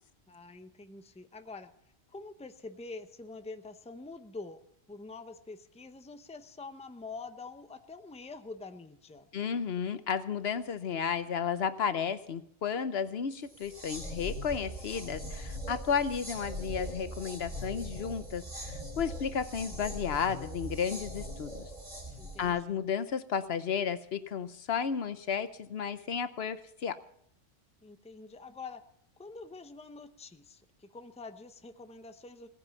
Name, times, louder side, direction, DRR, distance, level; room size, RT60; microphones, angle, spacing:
voice 1, 0.3-1.7 2.1-9.3 22.2-22.8 27.8-28.8 29.2-32.5, left 3 dB, 5° left, 9 dB, 0.7 m, -46 dB
voice 2, 9.3-21.7 22.4-27.0, left 7 dB, 65° left, 13 dB, 1.0 m, -33 dB
sound 1, 13.5-22.6, equal, 35° right, 3.8 m, -41 dB
18.0 x 9.7 x 7.0 m, 0.69 s
omnidirectional pair, 1.1 m